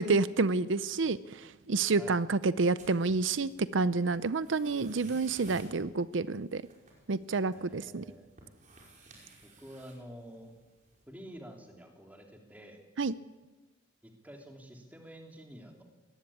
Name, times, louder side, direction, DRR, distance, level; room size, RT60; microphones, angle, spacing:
voice 1, 0.0-6.6 7.1-8.0 13.0-13.1, right 3 dB, 75° right, 16 dB, 0.6 m, -29 dB
sound 1, 2.8-11.0, right 2 dB, 40° right, 5.3 m, -56 dB
voice 2, 7.5-8.3 9.4-10.5 11.1-12.8 14.0-15.8, equal, 10° right, 2 dB, 3.1 m, -49 dB
22.0 x 18.5 x 8.6 m, 1.2 s
head